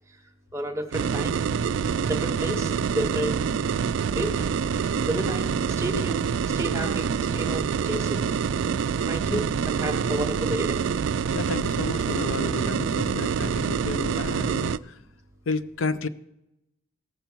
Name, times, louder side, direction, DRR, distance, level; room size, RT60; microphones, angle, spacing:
voice 1, 0.5-1.4 2.0-3.4 4.1-4.5 5.1-6.3 6.5-8.2 9.1-10.8, right 1 dB, 15° right, 3 dB, 1.0 m, -31 dB
sound 1, 0.9-14.8, right 6 dB, 65° right, 0.3 m, -26 dB
voice 2, 11.3-15.0 15.5-16.1, left 3 dB, 80° left, 14 dB, 0.5 m, -31 dB
18.0 x 6.8 x 4.5 m, 0.88 s
head